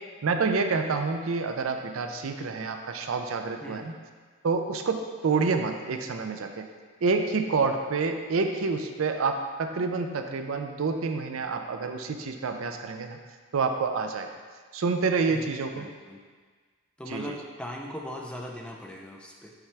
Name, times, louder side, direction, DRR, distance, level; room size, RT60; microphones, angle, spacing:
voice 1, 0.2-3.9 4.4-6.7 7.0-13.2 13.5-14.3 14.7-15.9 17.1-17.4, right 4 dB, 75° right, 6 dB, 0.5 m, -28 dB
voice 2, 15.7-16.2 17.0-19.5, left 1 dB, 5° left, -1 dB, 0.5 m, -39 dB
5.8 x 5.7 x 3.4 m, 1.5 s
head